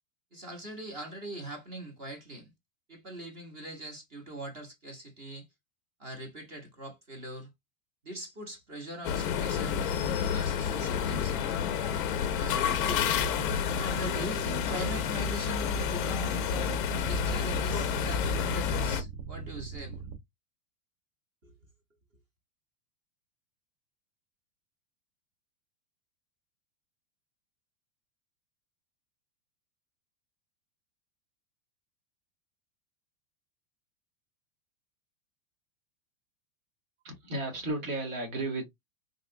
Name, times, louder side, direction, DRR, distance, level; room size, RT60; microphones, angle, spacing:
voice 1, 0.3-2.5 2.9-5.5 6.0-7.5 8.0-10.0 10.3-11.4 12.3-13.1 13.8-20.1 21.4-21.5, right 1 dB, 20° right, 0.8 m, -42 dB
sound 1, 9.0-19.0, left 7 dB, 40° left, 0.4 m, -29 dB
sound 2, 12.7-20.2, right 6 dB, 60° right, 0.7 m, -43 dB
voice 2, 37.0-38.7, right 2 dB, 80° right, 1.9 m, -33 dB
3.7 x 2.3 x 2.4 m
supercardioid pair, 175°, 40 cm